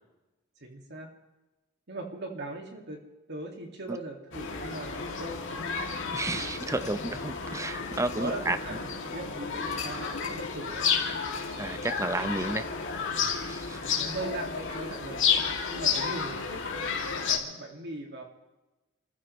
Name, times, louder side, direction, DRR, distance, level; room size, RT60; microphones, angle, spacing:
voice 1, 0.6-1.1 1.9-3.0 3.3-5.9 6.8-6.9 8.2-10.9 13.8-15.2 15.7-18.2, right 2 dB, 55° right, 2 dB, 2.2 m, -39 dB
sound 1, 4.3-17.4, left 6 dB, 65° left, 2.6 m, -32 dB
voice 2, 6.1-8.6 11.6-12.6 13.5-13.8 15.3-15.4, right 2 dB, 15° right, 11 dB, 0.7 m, -32 dB
sound 2, 6.6-9.0 9.7-10.5 10.8-11.0 11.3-11.5, left 6 dB, 40° left, 4.9 m, -44 dB
29.5 x 15.0 x 3.2 m, 1.1 s
head